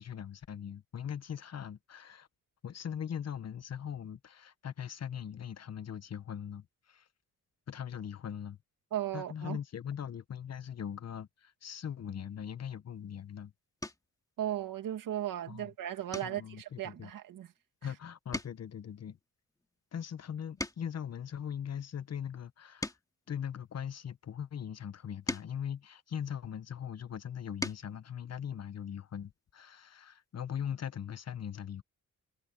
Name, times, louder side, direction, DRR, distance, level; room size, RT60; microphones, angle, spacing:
voice 1, 0.0-2.3 2.6-7.1 7.7-8.6 9.1-13.5 15.5-15.7 16.2-17.1 17.8-19.2 19.9-22.9 23.3-31.8, left 8 dB, 50° left, 1.1 m, -40 dB
voice 2, 8.9-9.6 14.4-17.5, right 11 dB, 85° right, 2.3 m, -36 dB
sound 1, 12.9-13.2 13.8-14.2 14.7-15.1 15.4-15.6 16.1-17.9 18.2-21.1 21.7-24.2 24.9-26.7 27.2-28.0 29.4-29.5 29.8-29.9, left 1 dB, 10° left, 2.5 m, -44 dB
cardioid pair, 105°, 32 cm